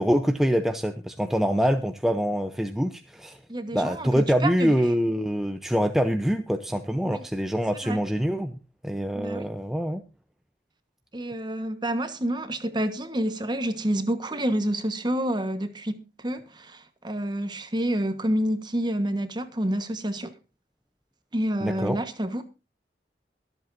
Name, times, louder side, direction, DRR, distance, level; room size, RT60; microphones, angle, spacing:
voice 1, 0.0-3.4 3.7-8.6 8.8-10.0 21.6-22.0, equal, ahead, 0.6 m, -25 dB
voice 2, 3.5-4.7 7.0-7.2 7.8-8.0 9.1-9.5 11.1-20.3 21.3-22.4, right 1 dB, 25° right, 1.2 m, -28 dB
23.5 x 7.9 x 2.6 m
head